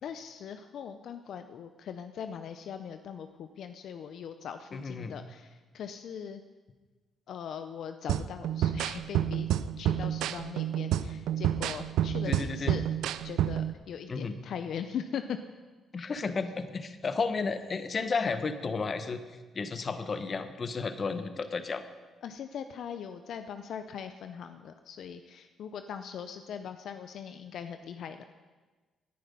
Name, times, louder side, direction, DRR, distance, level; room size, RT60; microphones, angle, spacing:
voice 1, 0.0-6.4 7.3-9.5 9.8-12.8 13.2-15.4 16.0-16.1 22.2-28.2, left 8 dB, 70° left, 9 dB, 0.6 m, -40 dB
voice 2, 4.7-5.1 12.2-12.7 14.1-14.4 15.9-19.2 19.5-21.8, left 4 dB, 40° left, 10 dB, 1.1 m, -32 dB
sound 1, 8.1-13.7, right 11 dB, 85° right, 0.5 m, -29 dB
18.0 x 10.0 x 5.4 m, 1.3 s
cardioid pair, 90°, 0 cm